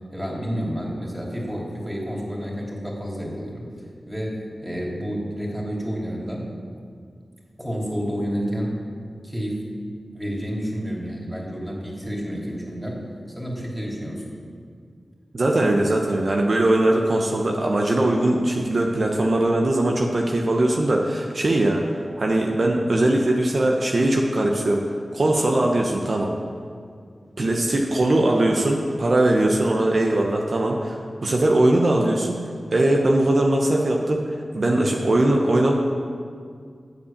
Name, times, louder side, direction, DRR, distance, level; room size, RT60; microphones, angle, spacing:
voice 1, 0.1-3.7 4.0-6.5 7.6-8.8 9.2-9.7 10.1-13.0 13.4-14.3 34.7-34.9, equal, 5° right, -3 dB, 3.1 m, -30 dB
voice 2, 15.3-24.8 25.1-26.3 27.4-30.9 31.2-32.4 32.7-35.7, right 1 dB, 60° right, 0 dB, 1.0 m, -20 dB
8.1 x 7.4 x 7.2 m, 2.1 s
cardioid pair, 40°, 0 cm